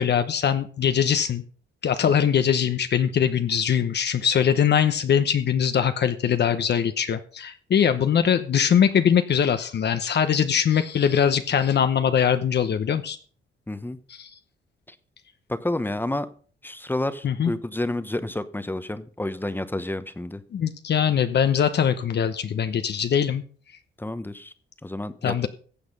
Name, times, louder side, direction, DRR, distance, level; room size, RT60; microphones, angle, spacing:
voice 1, 0.0-1.4 1.8-13.2 14.1-14.3 17.2-17.5 20.5-23.4 25.2-25.5, left 8 dB, 55° left, 9 dB, 0.9 m, -22 dB
voice 2, 13.7-14.0 15.5-16.3 16.6-20.4 24.0-24.5 24.8-25.5, left 1 dB, 10° left, 13 dB, 0.9 m, -30 dB
15.5 x 7.9 x 5.3 m, 0.43 s
cardioid pair, 110°, 20 cm